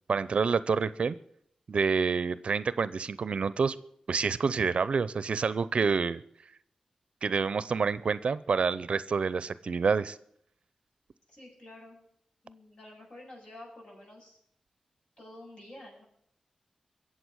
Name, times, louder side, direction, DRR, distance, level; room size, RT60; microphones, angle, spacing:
voice 1, 0.1-1.2 1.7-3.8 4.1-6.2 7.2-10.2, right 5 dB, 65° right, 17 dB, 0.6 m, -28 dB
voice 2, 11.3-12.0 12.4-14.4 15.2-16.0, left 1 dB, 45° left, -2 dB, 7.9 m, -49 dB
22.0 x 7.8 x 6.3 m, 0.71 s
wide cardioid pair, 85°, 2 cm